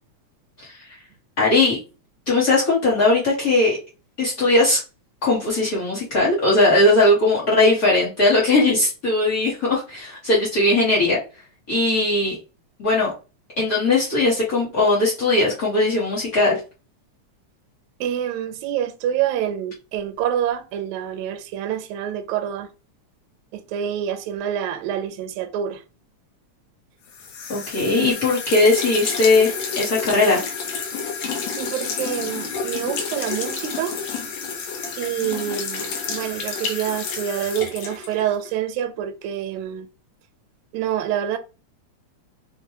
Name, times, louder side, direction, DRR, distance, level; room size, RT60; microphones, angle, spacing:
voice 1, 1.4-1.8 2.3-3.8 4.2-4.8 5.2-11.2 11.7-12.4 12.8-13.1 13.6-16.6 27.5-30.4, left 2 dB, 50° left, 1.1 m, -19 dB
voice 2, 18.0-22.7 23.5-25.8 28.0-28.2 31.6-34.0 35.0-39.9 40.7-41.4, right 10 dB, 80° right, 1.9 m, -27 dB
sound 1, 27.1-38.5, left 5 dB, 70° left, 1.9 m, -30 dB
5.2 x 2.2 x 3.0 m
omnidirectional pair, 3.5 m